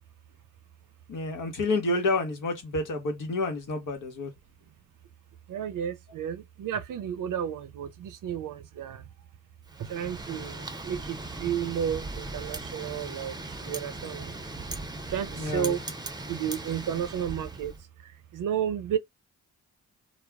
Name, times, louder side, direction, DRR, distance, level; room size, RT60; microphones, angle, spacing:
voice 1, 1.1-4.3 15.4-15.8, left 2 dB, 70° left, 1.0 m, -29 dB
voice 2, 5.5-9.0 9.9-13.3 13.6-14.3 15.1-15.8 16.3-17.7 18.3-19.0, right 9 dB, 75° right, 0.6 m, -32 dB
Wind, 9.7-17.8, right 2 dB, 15° right, 0.6 m, -39 dB
2.3 x 2.0 x 3.3 m
supercardioid pair, 50°, 32 cm